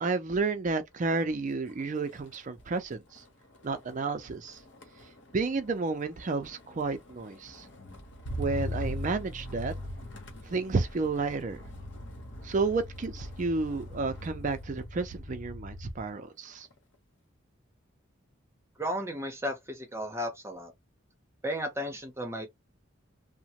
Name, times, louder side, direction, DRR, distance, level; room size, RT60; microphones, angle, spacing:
voice 1, 0.0-3.2 3.6-4.6 5.3-7.7 8.4-9.7 10.5-11.6 12.4-16.7, right 3 dB, 40° right, 0.4 m, -31 dB
Motor vehicle (road), 1.0-1.3 1.7-16.1 16.5-16.9, left 1 dB, 60° left, 1.0 m, -41 dB
voice 2, 18.8-20.7 21.4-22.5, equal, 15° right, 0.8 m, -34 dB
2.9 x 2.1 x 2.8 m
head